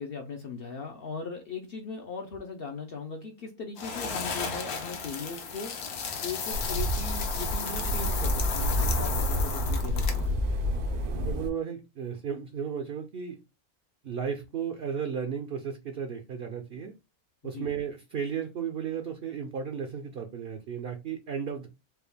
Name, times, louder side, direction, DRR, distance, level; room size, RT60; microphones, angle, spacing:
voice 1, 0.0-5.8 6.2-10.5 17.4-17.7, left 5 dB, 65° left, 0.6 m, -39 dB
sound 1, 3.8-10.3, left 5 dB, 80° left, 1.4 m, -34 dB
sound 2, 6.5-11.5, equal, 80° right, 1.2 m, -29 dB
voice 2, 11.2-13.4 14.0-16.9 17.4-21.7, right 7 dB, 60° right, 0.6 m, -34 dB
4.5 x 2.3 x 3.3 m
omnidirectional pair, 1.6 m